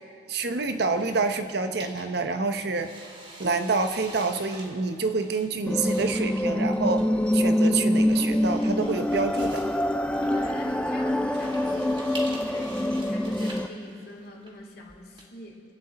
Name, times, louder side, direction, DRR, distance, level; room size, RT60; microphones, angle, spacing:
voice 1, 0.3-3.0 3.4-9.7, right 4 dB, 60° right, 7 dB, 0.8 m, -27 dB
sound 1, 0.7-15.2, right 1 dB, 30° right, 2.4 m, -46 dB
sound 2, 5.7-13.7, left 1 dB, 5° left, 0.4 m, -25 dB
voice 2, 10.1-15.6, left 1 dB, 60° left, -1 dB, 2.5 m, -43 dB
27.5 x 9.2 x 4.2 m, 2.5 s
head